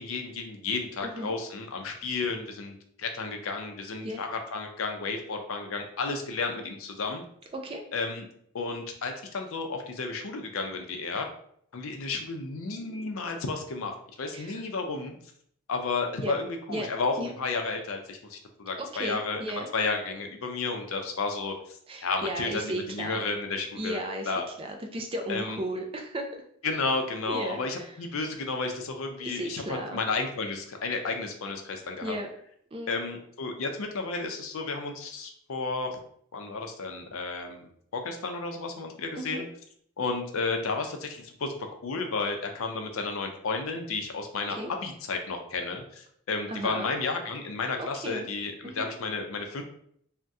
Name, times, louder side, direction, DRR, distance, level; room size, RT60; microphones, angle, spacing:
voice 1, 0.0-7.2 7.9-8.3 8.5-11.3 11.7-15.2 15.7-19.4 19.7-24.0 24.3-24.4 25.3-25.6 26.6-32.1 32.9-36.0 36.3-39.5 40.0-41.5 41.8-44.6 44.8-49.6, left 4 dB, 75° left, 4 dB, 0.5 m, -32 dB
voice 2, 1.0-1.4 4.0-4.2 7.5-7.8 14.3-14.6 16.2-16.3 16.7-16.9 17.2-17.3 18.8-19.7 21.9-23.2 23.8-24.3 24.6-26.3 27.3-27.9 29.2-30.0 32.0-32.3 32.7-32.9 39.1-39.4 44.6-44.7 46.5-46.9 47.8-48.2 48.6-48.9, right 1 dB, 25° right, 3 dB, 0.4 m, -35 dB
2.6 x 2.1 x 3.5 m, 0.66 s
head